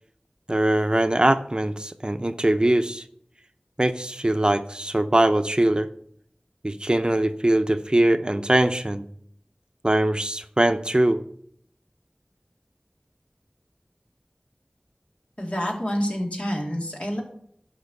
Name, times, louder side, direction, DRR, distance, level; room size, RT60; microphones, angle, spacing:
voice 1, 0.5-3.0 3.8-5.9 6.6-9.1 9.8-11.2, right 1 dB, 35° right, 9 dB, 0.7 m, -22 dB
voice 2, 15.4-17.2, equal, 55° left, -1 dB, 3.0 m, -27 dB
12.0 x 5.2 x 6.5 m, 0.66 s
wide cardioid pair, 40°, 3 cm